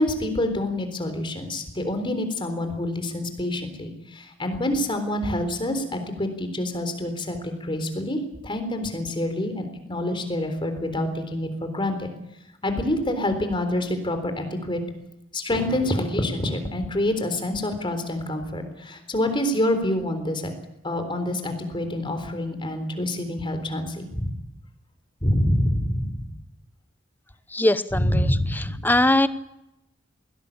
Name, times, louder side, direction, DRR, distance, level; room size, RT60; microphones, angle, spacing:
voice 1, 0.0-12.1 12.6-14.8 15.3-20.5 20.8-24.3 25.2-26.2 27.9-28.8, left 1 dB, 25° left, 7 dB, 3.8 m, -26 dB
voice 2, 27.5-28.3 28.6-29.3, left 1 dB, 10° left, 14 dB, 0.8 m, -21 dB
21.0 x 17.5 x 8.7 m, 0.87 s
head